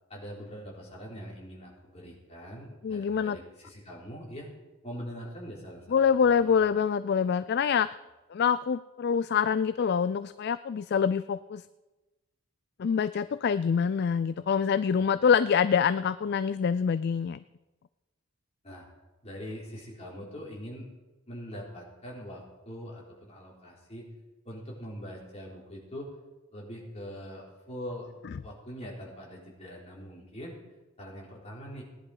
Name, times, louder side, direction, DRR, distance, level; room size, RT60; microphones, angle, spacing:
voice 1, 0.1-4.5 4.8-6.6 15.0-15.1 18.6-18.9 19.2-20.9 21.3-24.1 24.4-26.1 26.5-28.1 28.4-30.5 31.0-31.8, equal, 30° left, -3 dB, 4.0 m, -43 dB
voice 2, 2.8-3.4 5.9-7.9 8.3-11.6 12.8-17.4, left 7 dB, 50° left, 14 dB, 0.3 m, -25 dB
18.0 x 10.5 x 4.9 m, 1.1 s
head